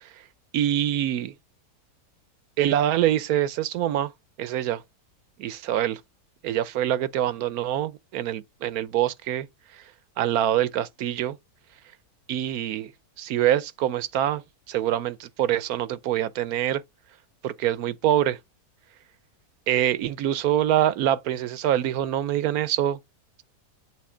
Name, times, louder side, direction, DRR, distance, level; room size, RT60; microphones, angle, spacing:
voice 1, 0.5-1.3 2.6-4.1 4.4-4.8 5.4-6.0 6.4-9.5 9.7-9.8 10.2-11.4 12.3-12.9 13.2-14.4 14.7-16.8 17.4-18.4 19.7-23.0, right 11 dB, 70° right, 1.0 m, -25 dB
7.6 x 3.2 x 4.9 m
omnidirectional pair, 1.7 m